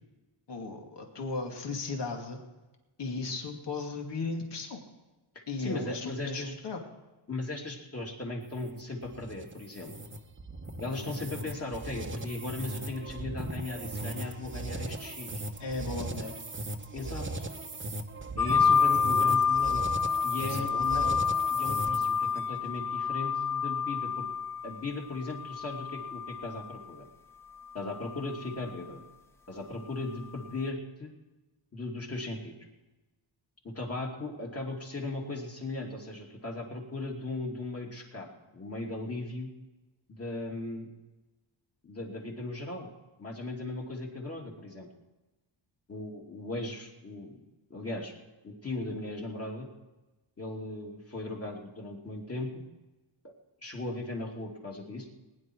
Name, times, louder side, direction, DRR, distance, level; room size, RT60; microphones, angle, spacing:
voice 1, 0.5-2.4 3.0-4.9 5.5-6.8 15.6-16.3 20.5-21.1, left 3 dB, 60° left, 2 dB, 2.5 m, -36 dB
voice 2, 5.6-6.5 7.3-9.9 10.8-15.4 16.9-17.5 18.4-19.8 20.2-21.2 21.5-24.3 24.6-27.0 27.7-29.0 29.5-31.1 31.7-32.5 33.6-38.3 38.5-39.5 40.1-40.9 41.8-42.9 43.2-44.9 45.9-47.3 47.7-48.1 48.4-49.7 50.4-52.6 53.2-53.3 53.6-55.1, left 2 dB, 30° left, 0 dB, 2.9 m, -37 dB
sound 1, 8.4-22.3, right 2 dB, 25° right, 1.1 m, -38 dB
sound 2, 18.4-26.8 27.8-28.6, left 6 dB, 5° left, 1.2 m, -28 dB
20.5 x 10.5 x 4.7 m, 1.1 s
wide cardioid pair, 125°, 48 cm